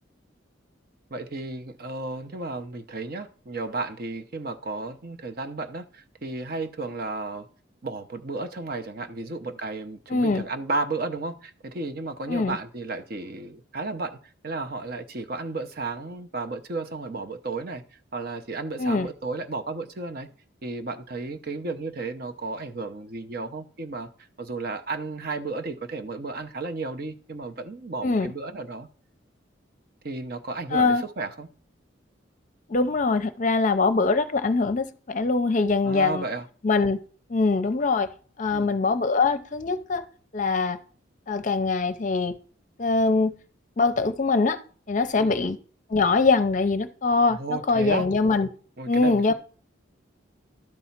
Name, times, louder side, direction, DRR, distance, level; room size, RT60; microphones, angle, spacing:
voice 1, 1.1-7.5 7.8-14.2 14.4-17.8 18.1-20.3 20.6-24.1 24.4-28.9 30.0-31.5 35.8-36.5 38.5-38.8 45.2-45.4 47.3-48.1 48.8-49.3, right 3 dB, 50° right, 0.7 m, -33 dB
voice 2, 10.1-10.4 12.3-12.6 18.8-19.1 28.0-28.3 30.7-31.0 32.7-36.2 36.6-37.0 37.3-38.1 38.4-40.0 40.3-40.8 41.3-42.3 42.8-43.3 43.8-44.6 44.9-45.6 45.9-48.5 48.9-49.3, left 3 dB, 40° left, 0.6 m, -23 dB
12.0 x 4.2 x 5.7 m
head